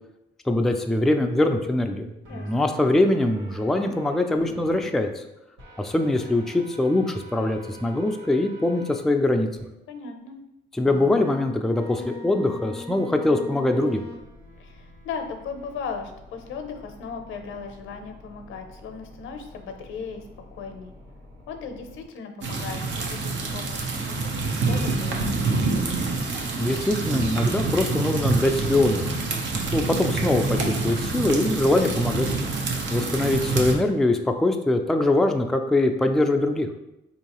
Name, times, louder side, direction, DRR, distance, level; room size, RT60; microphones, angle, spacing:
voice 1, 0.5-2.1 2.3-5.2 5.8-9.5 10.8-14.0 26.6-29.1 29.5-32.3 32.9-36.7, left 2 dB, ahead, 4 dB, 0.3 m, -23 dB
sound 1, 2.2-4.8 5.6-9.0 9.6-9.7 10.8-22.0, left 1 dB, 85° right, 1.1 m, -44 dB
voice 2, 2.3-2.7 9.9-10.4 14.6-20.2 20.5-20.9 21.5-24.4 24.7-26.1, left 5 dB, 80° left, 5 dB, 0.6 m, -37 dB
sound 2, 22.4-33.7, right 3 dB, 70° right, 0.8 m, -26 dB
4.6 x 2.7 x 2.9 m, 0.89 s
cardioid pair, 90°, 20 cm